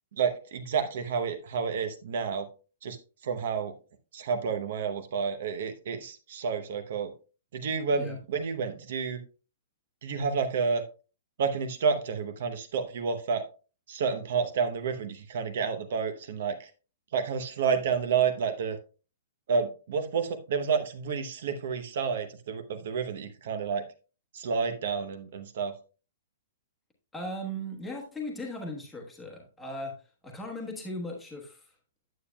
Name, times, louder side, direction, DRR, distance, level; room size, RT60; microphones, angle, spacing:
voice 1, 0.2-2.5 2.8-3.0 3.2-3.7 4.1-7.1 7.5-9.2 10.0-10.8 11.4-13.4 13.9-16.7 17.1-18.8 19.5-23.8 24.3-25.7, right 5 dB, 45° right, 9 dB, 0.8 m, -30 dB
voice 2, 27.1-29.9 30.2-31.7, equal, 5° left, -2 dB, 1.2 m, -37 dB
9.3 x 8.5 x 2.2 m, 0.34 s
hypercardioid pair, 180°, 0 cm